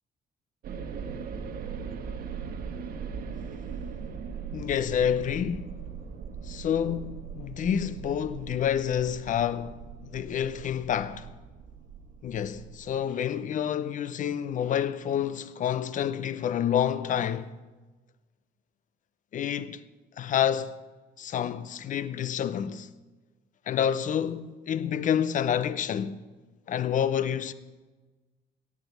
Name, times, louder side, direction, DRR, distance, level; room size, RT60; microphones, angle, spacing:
sound 1, 0.6-13.0, right 6 dB, 60° right, 1.4 m, -40 dB
voice 1, 4.5-5.7 6.4-11.3 12.2-17.5 19.3-19.8 20.2-20.8 21.2-22.9 23.7-26.2 26.7-27.5, left 9 dB, 50° left, 0.7 m, -28 dB
13.5 x 8.6 x 7.2 m
cardioid pair, 110°, 17 cm